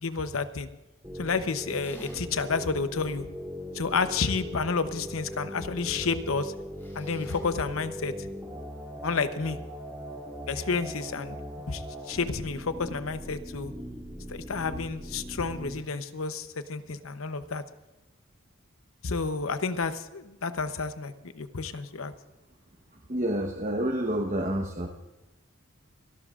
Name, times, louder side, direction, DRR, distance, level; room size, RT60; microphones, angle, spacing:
voice 1, 0.0-0.7 1.2-3.3 3.7-6.5 6.9-8.1 9.0-9.6 10.5-11.4 11.7-13.7 14.3-17.6 19.0-22.1, left 4 dB, 80° left, 11 dB, 0.9 m, -30 dB
sound 1, 1.0-15.8, equal, 15° right, 3.0 m, -40 dB
sound 2, 1.8-2.5 3.0-3.1 6.8-7.4, left 1 dB, 10° left, 4.0 m, -50 dB
voice 2, 23.1-24.9, right 1 dB, 35° right, 2 dB, 1.1 m, -28 dB
29.5 x 12.5 x 2.5 m, 1.0 s
head